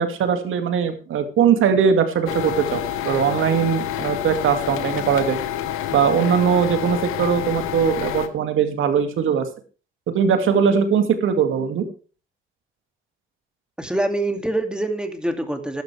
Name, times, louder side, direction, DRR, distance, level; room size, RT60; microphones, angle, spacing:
voice 1, 0.0-5.4 5.9-9.5 10.1-11.9, right 7 dB, 70° right, 7 dB, 2.5 m, -20 dB
sound 1, 2.3-8.3, left 11 dB, 90° left, 1.3 m, -28 dB
voice 2, 13.8-15.8, right 1 dB, 5° right, 5 dB, 2.5 m, -25 dB
15.0 x 12.0 x 3.5 m, 0.36 s
cardioid pair, 80°, 21 cm